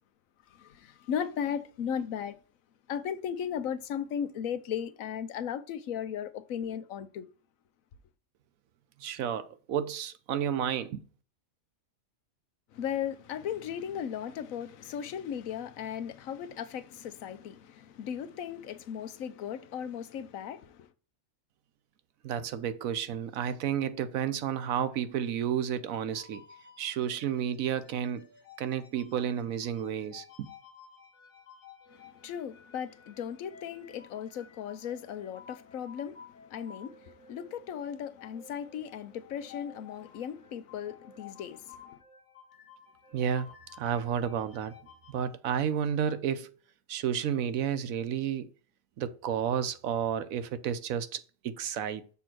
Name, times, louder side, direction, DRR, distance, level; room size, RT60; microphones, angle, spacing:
voice 1, 0.5-2.4 2.9-7.3 12.7-20.9 31.9-42.0, left 8 dB, 80° left, 1.1 m, -36 dB
voice 2, 9.0-11.0 22.2-26.4 26.8-28.3 28.6-30.5 43.1-44.8 45.1-46.6 46.9-48.5 49.0-52.0, right 9 dB, 85° right, 1.1 m, -31 dB
sound 1, 26.1-45.2, left 6 dB, 40° left, 1.2 m, -54 dB
6.9 x 3.7 x 6.0 m
omnidirectional pair, 1.4 m